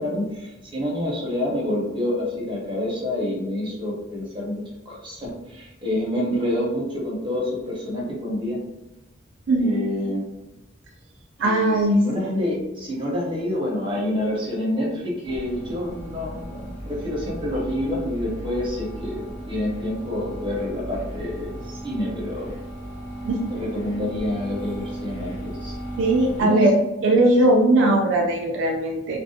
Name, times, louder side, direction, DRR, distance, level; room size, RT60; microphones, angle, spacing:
voice 1, 0.0-8.6 9.6-10.2 11.4-22.5 23.5-25.8 26.4-26.6 27.8-28.0, left 1 dB, 25° right, -4 dB, 0.8 m, -27 dB
voice 2, 9.5-9.8 11.4-12.0 23.2-23.5 26.0-26.7 27.0-29.2, right 2 dB, 70° right, 1 dB, 0.4 m, -19 dB
sound 1, 15.2-26.4, right 1 dB, 70° left, 1.1 m, -36 dB
2.4 x 2.3 x 2.6 m, 0.97 s
head